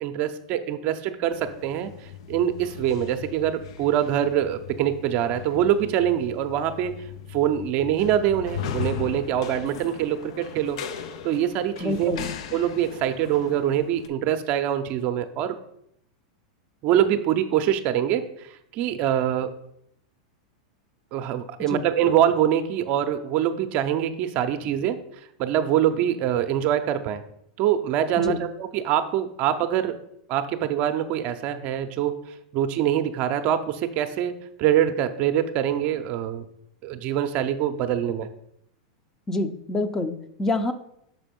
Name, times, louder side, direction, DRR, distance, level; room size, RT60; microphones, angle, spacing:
voice 1, 0.0-6.9 7.3-10.8 11.2-12.2 12.5-15.6 16.8-19.5 21.1-25.0 25.4-27.2 27.6-30.0 30.3-32.1 32.5-36.4 36.8-38.3, right 10 dB, 50° right, 8 dB, 0.6 m, -24 dB
sound 1, 1.3-14.1, left 8 dB, 70° left, 0.6 m, -38 dB
voice 2, 11.8-12.3 21.6-21.9 28.2-28.4 39.3-40.7, left 2 dB, 15° left, 8 dB, 0.6 m, -27 dB
6.1 x 4.1 x 5.2 m, 0.74 s
hypercardioid pair, 115°, 3 cm